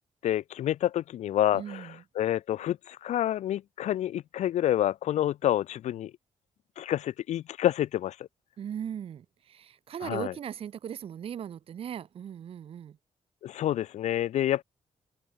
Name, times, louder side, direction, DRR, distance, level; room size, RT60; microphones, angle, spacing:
voice 1, 0.2-1.9 2.2-6.1 6.8-8.2 10.0-10.3 13.4-14.6, left 12 dB, 75° left, 0.6 m, -28 dB
voice 2, 1.5-2.0 8.6-13.0, right 9 dB, 50° right, 1.0 m, -38 dB
wide cardioid pair, 155°, 12 cm